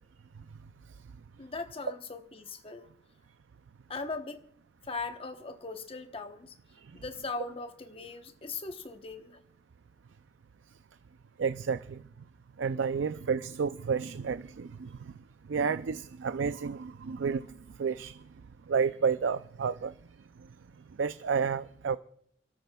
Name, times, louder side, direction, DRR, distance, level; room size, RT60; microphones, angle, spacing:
voice 1, 1.4-2.9 3.9-4.4 4.8-6.5 6.9-9.4, left 3 dB, 30° left, 1.0 m, -39 dB
voice 2, 11.4-12.0 12.6-15.2 15.5-18.2 18.7-20.0 20.4-20.5 20.8-22.0, right 6 dB, 85° right, 0.4 m, -31 dB
29.0 x 13.5 x 2.3 m
head